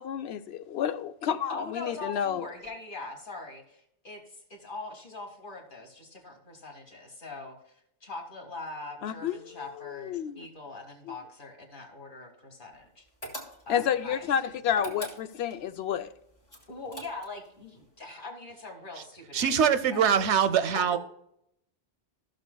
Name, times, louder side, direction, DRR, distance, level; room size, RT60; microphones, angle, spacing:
voice 1, 0.0-2.4 9.0-10.5 11.1-11.2 13.7-16.1, left 9 dB, 70° left, 0.8 m, -30 dB
voice 2, 1.5-13.1 13.7-14.3 16.7-19.6 19.9-20.8, left 2 dB, 50° left, 2.0 m, -42 dB
sound 1, 13.2-13.9 14.7-15.6 16.5-17.5, equal, 30° left, 2.8 m, -40 dB
voice 3, 19.3-21.0, right 8 dB, 90° right, 1.0 m, -23 dB
15.0 x 6.6 x 2.2 m
omnidirectional pair, 1.1 m